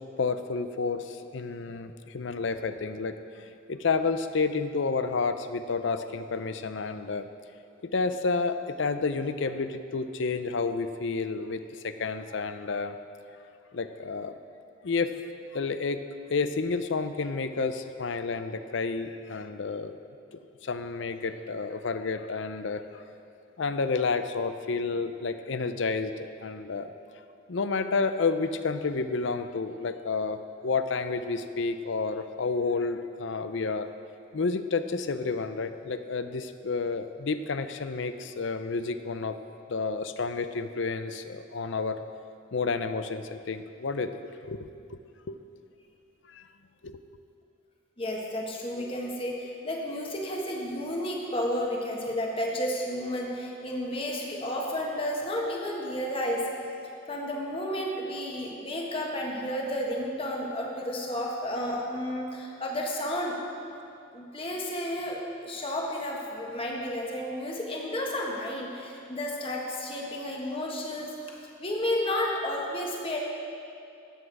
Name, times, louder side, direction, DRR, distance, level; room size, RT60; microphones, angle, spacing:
voice 1, 0.2-7.3 7.8-13.0 13.7-14.3 14.8-15.1 15.5-16.0 16.3-19.9 20.6-23.0 23.6-26.9 27.5-33.9 34.3-39.3 39.7-42.0 42.5-44.7 45.3-45.4 46.3-46.4 46.8-47.0, left 4 dB, 65° left, 10 dB, 0.5 m, -30 dB
voice 2, 48.0-56.4 57.1-63.3 64.1-65.2 65.4-71.1 71.6-73.2, left 1 dB, 25° left, -1 dB, 1.4 m, -32 dB
13.0 x 8.7 x 4.8 m, 2.6 s
head